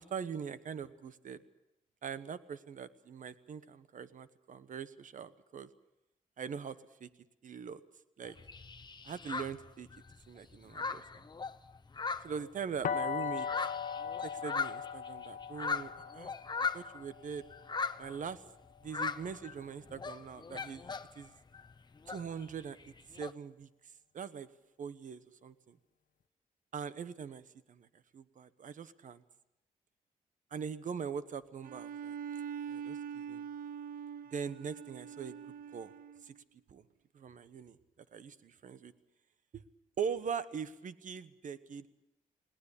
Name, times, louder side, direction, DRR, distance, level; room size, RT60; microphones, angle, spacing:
voice 1, 0.0-1.4 2.0-5.7 6.4-7.1 7.4-7.8 8.2-8.4 9.0-9.9 10.3-11.2 12.2-13.5 14.2-16.3 16.7-17.4 18.0-18.4 18.8-20.8 21.1-21.3 22.1-23.7 24.1-24.5 24.8-25.8 26.7-27.9 28.1-29.2 30.5-32.2 32.7-33.5 34.3-35.4 35.7-35.9 36.2-36.3 36.7-36.8 37.1-37.8 38.1-38.9 39.5-39.6 40.0-41.9, right 7 dB, 65° right, 14 dB, 1.2 m, -42 dB
sound 1, 8.2-10.2 10.5-12.9 13.2-17.0 17.5-18.2 18.8-19.6 19.9-21.3 21.5-23.3, left 5 dB, 30° left, 0.9 m, -39 dB
sound 2, 12.8-18.7, left 7 dB, 65° left, 1.1 m, -39 dB
Bowed string instrument, 31.6-36.3, right 8 dB, 85° right, 0.7 m, -43 dB
20.5 x 18.0 x 8.5 m, 0.89 s
cardioid pair, 80°, 14 cm